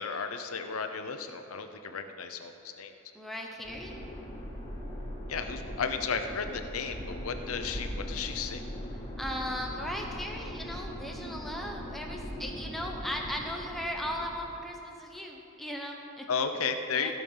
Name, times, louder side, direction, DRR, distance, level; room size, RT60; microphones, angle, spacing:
voice 1, 0.0-2.9 5.3-8.6 16.3-17.1, left 5 dB, 85° left, 7 dB, 0.7 m, -34 dB
voice 2, 3.1-3.9 8.9-16.3 16.9-17.1, equal, ahead, 0 dB, 1.2 m, -37 dB
sound 1, 3.6-14.6, equal, 25° left, 3.1 m, -40 dB
16.0 x 6.3 x 5.5 m, 2.8 s
head